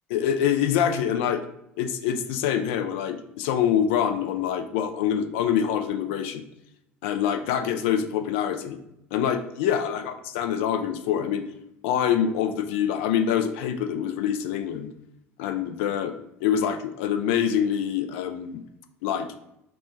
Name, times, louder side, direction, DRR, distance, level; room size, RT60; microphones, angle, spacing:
voice 1, 0.1-1.4 1.8-6.4 7.0-8.8 9.1-11.4 11.8-14.9 15.4-16.1 16.4-18.6 19.0-19.3, left 9 dB, 65° left, 7 dB, 0.4 m, -25 dB
3.0 x 2.2 x 4.2 m, 0.81 s
figure-of-eight pair, 65°, 7 cm